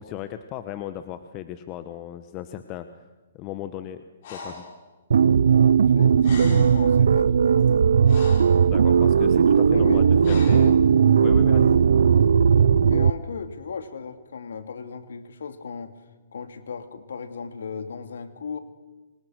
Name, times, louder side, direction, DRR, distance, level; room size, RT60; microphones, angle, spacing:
voice 1, 0.0-3.0 3.3-4.0 4.3-4.6 8.6-10.7 11.2-11.8, left 12 dB, 30° left, 10 dB, 1.3 m, -36 dB
Breathing, 4.2-4.7 5.9-6.0 6.2-6.9 7.6-8.6 10.2-10.7, left 3 dB, 50° left, 6.8 m, -37 dB
sound 1, 5.1-13.1, right 7 dB, 70° right, 0.8 m, -17 dB
voice 2, 5.6-7.8 9.7-10.8 12.9-16.0 16.3-18.6, left 5 dB, 75° left, 8 dB, 2.6 m, -36 dB
27.5 x 26.0 x 6.4 m, 1.2 s
hypercardioid pair, 135°, 0 cm